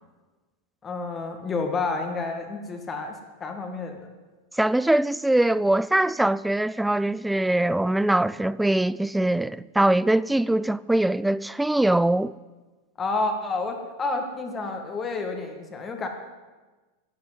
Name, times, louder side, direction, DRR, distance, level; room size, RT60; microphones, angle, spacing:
voice 1, 0.8-4.1 13.0-16.1, left 3 dB, 25° left, 2.0 m, -30 dB
voice 2, 4.6-12.3, right 1 dB, 5° right, 0.3 m, -22 dB
12.5 x 8.4 x 9.4 m
supercardioid pair, 125°, 0 cm